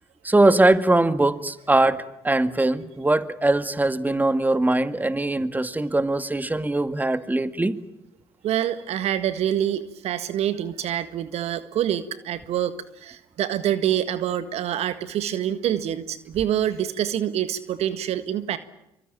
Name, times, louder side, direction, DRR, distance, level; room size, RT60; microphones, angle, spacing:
voice 1, 0.2-7.7, right 2 dB, 15° right, 12 dB, 2.0 m, -21 dB
voice 2, 8.4-18.6, right 10 dB, 60° right, 13 dB, 1.7 m, -26 dB
26.5 x 24.5 x 9.0 m, 0.84 s
hypercardioid pair, 50°, 12 cm